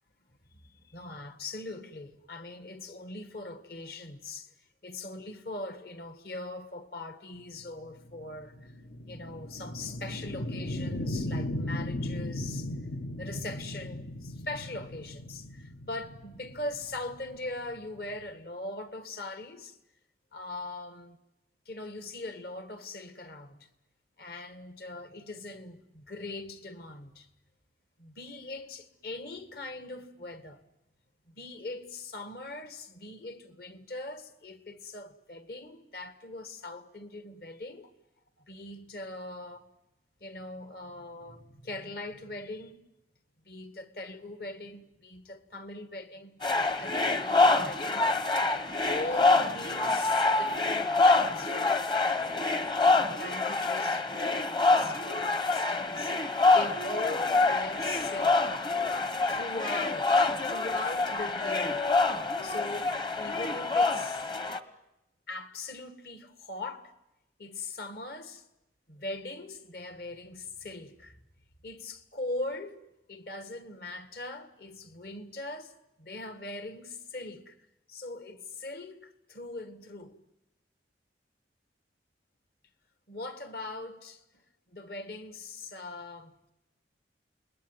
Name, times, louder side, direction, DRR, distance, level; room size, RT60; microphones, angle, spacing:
voice 1, 0.5-4.5 4.8-8.7 9.1-12.7 13.2-19.8 20.3-21.2 21.7-23.7 24.2-27.3 28.0-30.6 31.3-37.9 38.4-39.7 40.2-42.8 43.5-48.1 48.5-52.4 52.9-58.6 59.3-61.8 62.4-64.3 65.3-66.9 67.4-68.4 68.9-71.2 71.6-72.8 73.1-75.7 76.0-77.6 77.9-80.2 83.1-84.4 84.7-86.5, left 2 dB, 55° left, 1.9 m, -41 dB
sound 1, 7.6-18.3, left 1 dB, 75° left, 1.3 m, -37 dB
sound 2, 46.4-64.6, left 3 dB, 25° left, 1.1 m, -26 dB
29.0 x 21.0 x 9.3 m
head